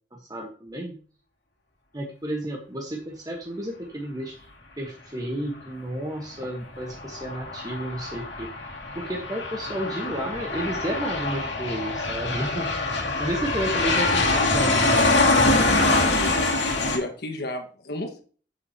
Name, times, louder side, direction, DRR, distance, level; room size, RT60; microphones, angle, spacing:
voice 1, 0.1-1.0 1.9-4.4 4.8-12.7 13.2-16.3, right 1 dB, 20° right, 0 dB, 1.1 m, -32 dB
Aircraft, 6.8-17.0, left 2 dB, 85° left, 2.2 m, -24 dB
voice 2, 15.8-16.4 16.9-18.2, left 1 dB, 60° left, 4 dB, 1.5 m, -32 dB
9.1 x 7.3 x 2.8 m, 0.41 s
head